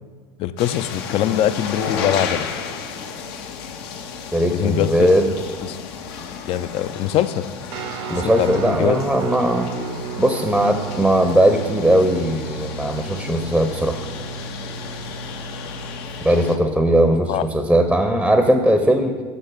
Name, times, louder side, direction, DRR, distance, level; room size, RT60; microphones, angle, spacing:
voice 1, 0.4-2.5 4.5-5.1 5.6-5.8 6.2-7.5 8.1-9.0 17.3-17.4, left 12 dB, 45° left, 14 dB, 0.4 m, -23 dB
sound 1, 0.6-16.6, left 6 dB, 75° left, 0.8 m, -33 dB
voice 2, 4.3-5.3 8.1-9.7 10.2-14.0 16.2-19.2, right 1 dB, ahead, 6 dB, 0.6 m, -18 dB
Guitar, 7.7-17.1, right 5 dB, 75° right, 0.8 m, -34 dB
8.1 x 5.6 x 4.5 m, 1.4 s
supercardioid pair, 100°, 13 cm